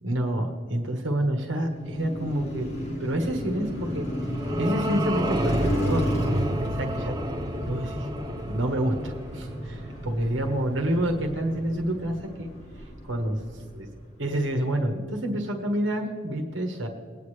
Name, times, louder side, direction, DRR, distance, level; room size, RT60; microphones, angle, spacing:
voice 1, 0.0-2.7 3.0-4.1 4.6-6.1 6.6-7.2 7.6-8.1 8.4-13.9 14.2-16.9, right 1 dB, 75° right, 3 dB, 1.3 m, -28 dB
Car passing by, 1.6-13.9, equal, 35° left, 2.2 m, -32 dB
sound 1, 3.8-10.3, right 1 dB, 20° right, 0.5 m, -34 dB
21.0 x 9.4 x 3.3 m, 2.3 s
head